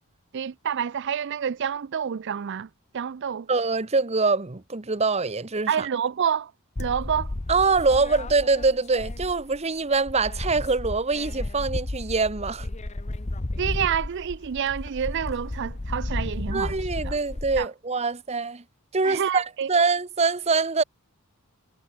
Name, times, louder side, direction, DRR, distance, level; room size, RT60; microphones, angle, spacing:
voice 1, 0.3-2.7 2.9-3.5 5.7-6.5 6.8-7.3 13.6-16.8 17.0-17.2 17.6-17.7 19.0-19.7, right 8 dB, 55° right, 0.4 m, -28 dB
voice 2, 3.5-5.9 7.5-12.7 16.5-18.6 18.9-20.8, right 4 dB, 30° right, 1.0 m, -24 dB
sound 1, 6.8-9.6 9.9-17.6, left 2 dB, 30° left, 0.8 m, -33 dB
head